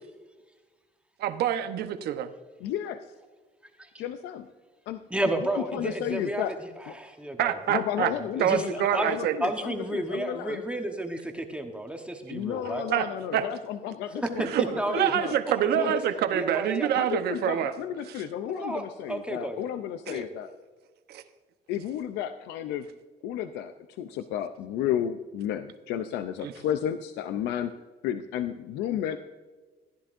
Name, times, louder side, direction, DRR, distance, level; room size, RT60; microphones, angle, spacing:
voice 1, 1.2-2.3 7.4-8.1 8.4-9.3 12.9-13.1 13.3-13.5 14.4-17.7 18.1-18.2 20.1-20.2 21.1-21.2 26.4-26.5, right 10 dB, 70° right, 9 dB, 0.9 m, -26 dB
voice 2, 2.6-3.1 4.0-4.5 4.9-5.0 5.4-6.5 6.9-7.0 7.7-10.6 12.3-15.4 15.7-15.9 17.0-20.5 21.7-22.9 23.2-27.7 28.0-29.2, left 10 dB, 85° left, 10 dB, 0.5 m, -32 dB
voice 3, 5.1-7.6 8.1-12.8 14.2-15.1 15.5-16.0 16.3-17.1 18.4-19.6 20.1-20.3, right 1 dB, 5° right, 4 dB, 1.0 m, -32 dB
15.5 x 10.5 x 2.6 m, 1.4 s
cardioid pair, 110°, 17 cm